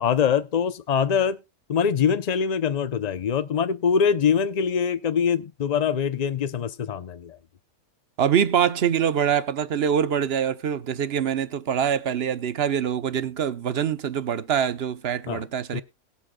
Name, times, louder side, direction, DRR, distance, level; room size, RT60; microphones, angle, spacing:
voice 1, 0.0-1.4 1.7-7.4 15.3-15.4 15.7-15.8, left 7 dB, 75° left, 0.3 m, -23 dB
voice 2, 8.2-15.8, right 8 dB, 50° right, 0.9 m, -24 dB
21.5 x 7.8 x 2.2 m
omnidirectional pair, 1.5 m